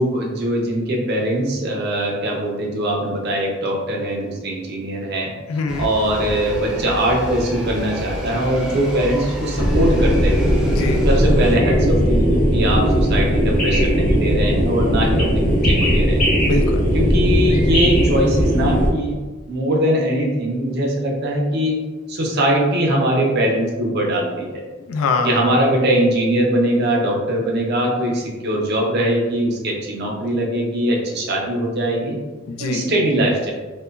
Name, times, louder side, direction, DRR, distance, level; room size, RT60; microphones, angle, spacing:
voice 1, 0.0-10.5 11.0-16.3 16.9-19.2 19.5-21.8 22.1-24.6 25.2-32.2 32.6-33.5, right 1 dB, 55° right, -1 dB, 0.6 m, -21 dB
voice 2, 5.5-5.9 10.7-11.0 16.4-16.8 24.9-25.4 32.5-32.9, left 3 dB, 80° left, 5 dB, 0.3 m, -23 dB
sound 1, 5.7-11.6, equal, 5° right, 0.4 m, -29 dB
sound 2, 9.6-18.9, equal, 40° left, 0.8 m, -17 dB
2.9 x 2.1 x 2.3 m, 1.2 s
head